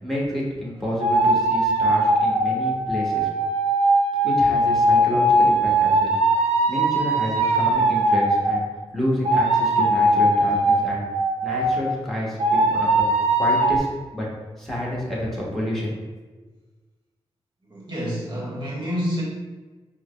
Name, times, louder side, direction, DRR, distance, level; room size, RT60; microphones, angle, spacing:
voice 1, 0.0-3.3 4.2-6.3 6.7-8.6 8.9-11.0 11.4-13.1 13.3-13.9 14.1-14.3 14.6-15.9, left 1 dB, ahead, -5 dB, 1.5 m, -29 dB
sound 1, 1.0-8.6 9.2-11.9 12.4-13.8, right 1 dB, 75° right, 0.6 m, -20 dB
voice 2, 17.7-19.2, equal, 45° right, -4 dB, 1.5 m, -28 dB
4.7 x 2.3 x 3.3 m, 1.3 s
cardioid pair, 50°, 11 cm